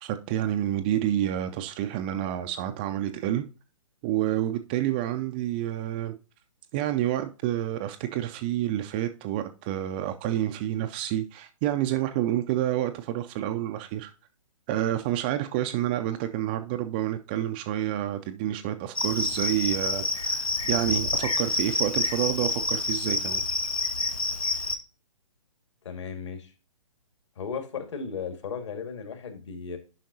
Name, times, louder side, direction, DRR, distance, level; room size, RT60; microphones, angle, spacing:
voice 1, 0.0-3.4 4.0-6.1 6.7-14.1 14.7-23.4, right 12 dB, 15° right, 0.3 m, -29 dB
Cricket, 19.0-24.8, left 2 dB, 85° left, 1.1 m, -28 dB
voice 2, 25.8-26.5 27.4-29.8, left 6 dB, 55° left, 1.9 m, -35 dB
10.0 x 5.7 x 2.7 m
figure-of-eight pair, 130°, 18 cm